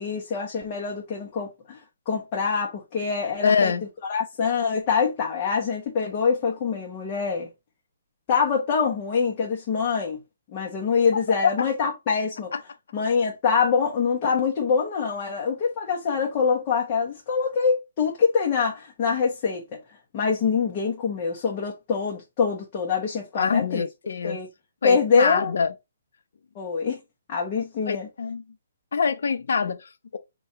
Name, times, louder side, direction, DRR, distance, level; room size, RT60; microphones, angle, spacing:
voice 1, 0.0-3.7 4.1-7.5 8.3-10.2 10.5-12.5 12.9-19.8 20.1-23.8 24.2-24.5 24.8-25.5 26.6-27.0 27.3-28.1, left 5 dB, 25° left, 0.8 m, -25 dB
voice 2, 3.4-3.9 11.4-11.7 12.5-12.6 23.4-24.4 24.8-25.7 27.9-28.4 28.9-30.2, left 6 dB, 70° left, 0.7 m, -24 dB
6.7 x 2.3 x 2.8 m
hypercardioid pair, 170°, 0 cm